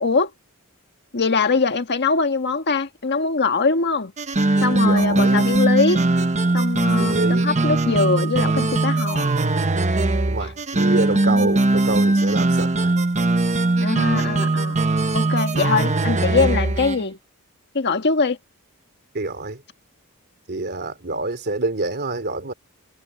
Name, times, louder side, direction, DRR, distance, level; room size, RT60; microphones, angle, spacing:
voice 1, 0.0-0.3 1.1-4.1 4.6-6.0 6.5-9.3 10.4-10.5 11.1-11.6 13.8-14.8 15.1-17.2 17.7-18.4, left 4 dB, 50° left, 1.6 m, -22 dB
sound 1, 4.2-17.0, right 2 dB, 30° right, 1.0 m, -20 dB
voice 2, 4.8-5.4 7.0-7.5 10.3-12.9 15.6-15.7 19.1-19.6 20.5-22.5, right 2 dB, 50° right, 2.8 m, -27 dB
head